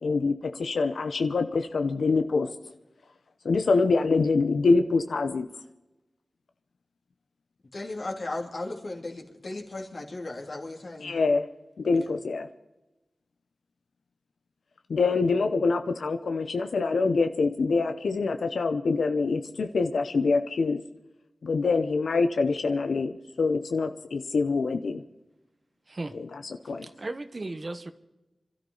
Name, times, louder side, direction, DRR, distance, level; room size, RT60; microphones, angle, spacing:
voice 1, 0.0-2.5 3.4-5.5 11.0-11.5 11.8-12.5 14.9-20.8 21.4-25.0 26.6-26.9, left 4 dB, 80° left, 8 dB, 0.8 m, -25 dB
voice 2, 7.7-11.1 12.0-12.2, left 2 dB, 50° left, 0 dB, 3.0 m, -36 dB
voice 3, 25.9-26.2 26.8-27.9, right 2 dB, 40° right, 10 dB, 1.0 m, -36 dB
26.5 x 13.0 x 4.0 m, 1.0 s
wide cardioid pair, 80°, 0 cm